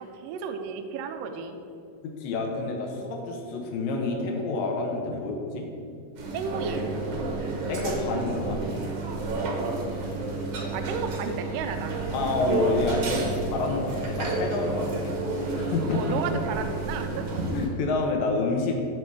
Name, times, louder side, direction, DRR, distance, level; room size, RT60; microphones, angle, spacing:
voice 1, 0.0-1.6 6.3-6.9 10.7-12.0 15.9-17.4, right 5 dB, 80° right, 7 dB, 2.2 m, -33 dB
voice 2, 2.0-5.7 7.7-8.6 12.1-15.2 15.5-16.2 17.5-18.8, left 3 dB, 80° left, 1 dB, 2.7 m, -28 dB
sound 1, 6.2-17.7, right 2 dB, 60° right, 1.7 m, -30 dB
12.5 x 4.1 x 6.2 m, 2.5 s
omnidirectional pair, 4.1 m